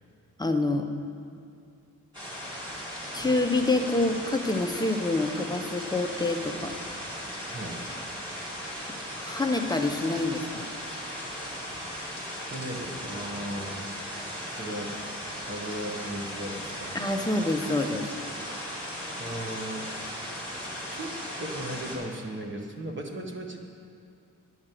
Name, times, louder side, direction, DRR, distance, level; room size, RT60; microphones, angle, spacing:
voice 1, 0.4-0.9 3.1-6.7 9.2-10.7 11.3-11.5 16.9-18.1, left 2 dB, 10° left, 3 dB, 0.6 m, -27 dB
sound 1, 2.1-21.9, equal, 15° right, 2.4 m, -37 dB
voice 2, 7.5-7.8 12.5-13.9 14.5-15.0 15.5-17.0 19.2-20.3 20.9-23.6, right 1 dB, 35° right, 1 dB, 1.1 m, -37 dB
11.0 x 6.2 x 9.0 m, 2.4 s
wide cardioid pair, 180°, 32 cm